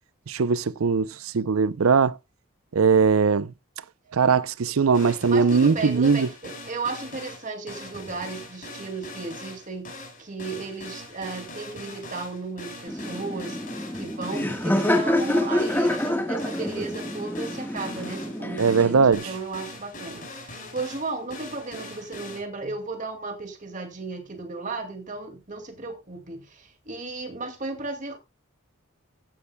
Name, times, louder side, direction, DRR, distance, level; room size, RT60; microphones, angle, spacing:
voice 1, 0.3-2.2 2.7-3.5 4.1-6.3 18.6-19.3, right 5 dB, 80° right, 0.5 m, -20 dB
sound 1, 4.9-22.4, left 2 dB, 40° left, 5.1 m, -41 dB
voice 2, 5.3-13.6 13.9-28.2, right 3 dB, 35° right, 2.2 m, -35 dB
Laughter, 12.9-19.1, left 1 dB, 10° left, 1.4 m, -27 dB
15.0 x 10.0 x 2.2 m
head